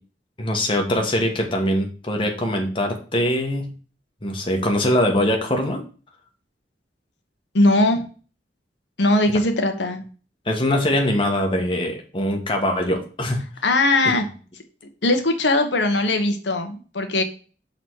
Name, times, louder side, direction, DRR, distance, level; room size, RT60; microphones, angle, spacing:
voice 1, 0.4-3.7 4.2-5.8 10.5-13.4 14.0-14.1, left 1 dB, 30° left, 2 dB, 1.3 m, -22 dB
voice 2, 7.5-8.0 9.0-10.0 13.6-14.2 15.0-17.2, left 2 dB, 90° left, 6 dB, 1.1 m, -19 dB
6.0 x 4.0 x 4.6 m, 0.37 s
head